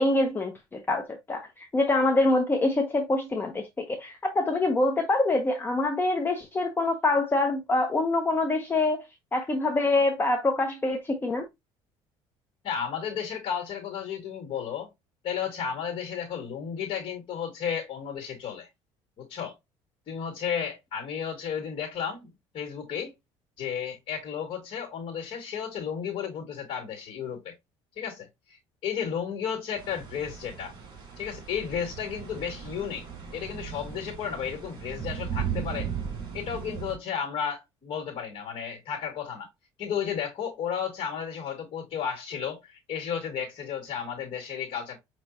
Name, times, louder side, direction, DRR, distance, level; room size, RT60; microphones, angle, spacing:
voice 1, 0.0-9.0 9.3-11.4, left 2 dB, 20° left, 0.8 m, -25 dB
voice 2, 12.6-14.9 15.2-18.7 19.2-19.5 20.1-23.1 23.6-27.5 28.0-30.7 31.2-33.1 33.3-35.9 36.3-39.5 39.8-45.0, left 7 dB, 50° left, 2.0 m, -33 dB
sound 1, 29.8-37.0, right 7 dB, 45° right, 2.9 m, -37 dB
5.9 x 3.1 x 2.7 m
cardioid pair, 120°, 11 cm